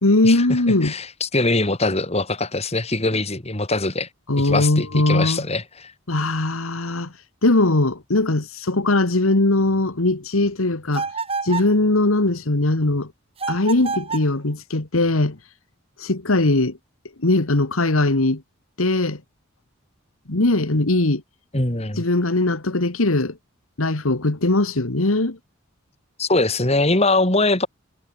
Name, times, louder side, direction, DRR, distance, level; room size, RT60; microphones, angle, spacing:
voice 1, 0.0-0.9 4.3-5.5 6.1-7.1 7.4-11.1 11.4-13.1 13.5-15.4 16.0-16.8 17.2-18.4 18.8-19.2 20.3-21.2 22.0-23.4 23.8-25.4, left 2 dB, 90° left, 1.8 m, -20 dB
voice 2, 0.8-4.1 4.4-5.9 21.5-22.0 26.2-27.7, left 2 dB, 30° left, 2.9 m, -22 dB
sound 1, 10.9-11.8 13.4-14.3, right 4 dB, 30° right, 6.0 m, -28 dB
head